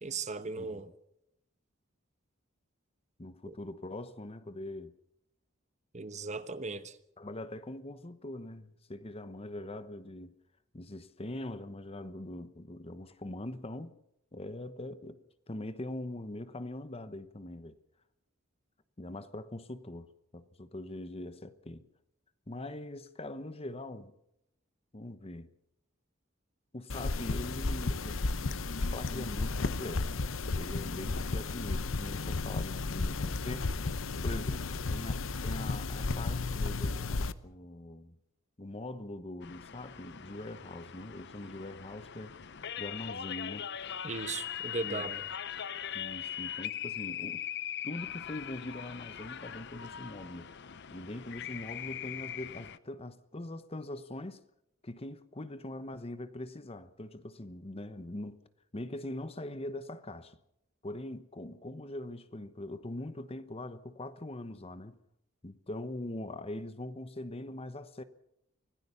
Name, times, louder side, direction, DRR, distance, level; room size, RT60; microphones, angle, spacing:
voice 1, 0.0-0.9 3.5-3.6 5.9-7.0 44.0-45.2, right 4 dB, 35° right, 1.1 m, -37 dB
voice 2, 3.2-4.9 7.2-10.3 10.7-13.9 14.3-15.2 15.5-17.8 19.0-21.9 22.5-24.1 24.9-25.5 26.7-28.5 28.8-30.1 30.5-33.7 34.2-38.2 38.6-42.4 42.8-43.7 44.8-45.1 45.9-47.4 47.8-50.5 50.9-54.4 54.8-58.4 58.7-60.4 60.8-65.0 65.4-68.0, left 1 dB, 30° left, 1.0 m, -42 dB
sound 1, 26.9-37.3, left 3 dB, 90° left, 0.9 m, -33 dB
sound 2, 39.4-52.8, left 10 dB, 60° left, 0.8 m, -41 dB
25.0 x 17.0 x 6.9 m
head